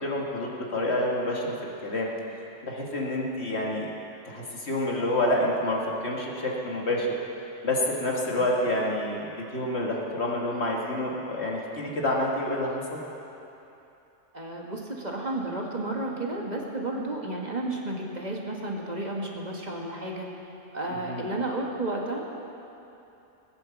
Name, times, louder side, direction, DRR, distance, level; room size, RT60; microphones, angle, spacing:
voice 1, 0.0-2.1 2.6-3.9 4.3-7.1 7.6-13.0 21.1-21.2, left 1 dB, 60° left, -2 dB, 2.1 m, -28 dB
voice 2, 14.3-20.3 20.7-22.2, right 2 dB, 35° right, -1 dB, 1.5 m, -32 dB
19.0 x 8.4 x 7.1 m, 2.9 s
omnidirectional pair, 1.3 m